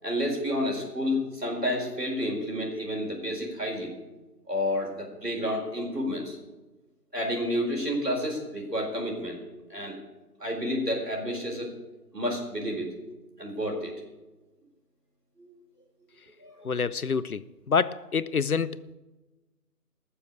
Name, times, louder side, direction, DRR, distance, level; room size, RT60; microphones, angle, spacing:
voice 1, 0.0-3.9 4.5-6.4 7.1-9.4 9.7-10.0 10.4-11.7 12.1-12.9 13.4-13.9 15.4-15.5 16.4-16.8, left 1 dB, 80° right, 0 dB, 4.6 m, -30 dB
voice 2, 16.6-18.9, left 6 dB, 65° left, 17 dB, 0.6 m, -27 dB
19.0 x 7.1 x 7.1 m, 1.1 s
figure-of-eight pair, 160°, 47 cm